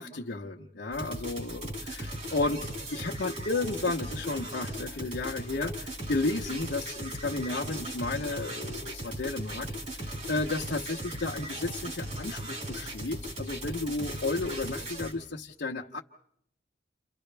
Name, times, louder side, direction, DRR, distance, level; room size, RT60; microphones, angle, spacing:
voice 1, 0.0-1.7 2.3-9.7 10.0-16.0, left 3 dB, 65° left, -3 dB, 0.9 m, -33 dB
sound 1, 0.9-15.1, right 1 dB, 45° right, 4.5 m, -38 dB
30.0 x 28.5 x 3.4 m, 0.71 s
head